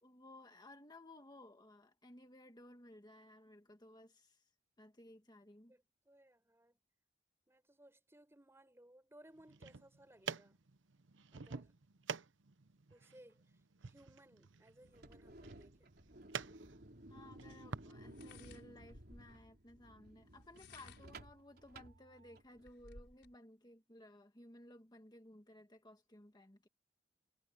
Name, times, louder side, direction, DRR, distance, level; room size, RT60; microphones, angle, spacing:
voice 1, 0.0-4.5 4.8-5.8 17.1-26.7, left 1 dB, 20° left, 1.7 m, -58 dB
voice 2, 5.7-6.8 7.5-10.6 11.3-11.7 12.9-16.0, right 1 dB, 15° right, 4.8 m, -63 dB
sound 1, 9.4-17.9, right 6 dB, 80° right, 0.9 m, -49 dB
sound 2, 14.8-22.7, right 1 dB, 55° right, 4.0 m, -57 dB
sound 3, 16.7-16.8 18.0-19.4 20.3-21.2 21.8-21.9 22.3-23.3, left 3 dB, 65° left, 7.0 m, -59 dB
head